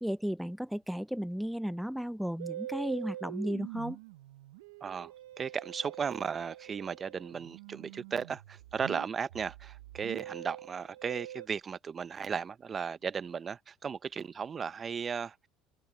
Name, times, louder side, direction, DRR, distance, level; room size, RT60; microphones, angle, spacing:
voice 1, 0.0-4.0, equal, ahead, 0.5 m, -34 dB
Musical instrument, 2.4-11.5, right 13 dB, 85° right, 0.8 m, -45 dB
voice 2, 4.8-15.5, right 6 dB, 35° right, 0.8 m, -36 dB
supercardioid pair, 85°, 0 cm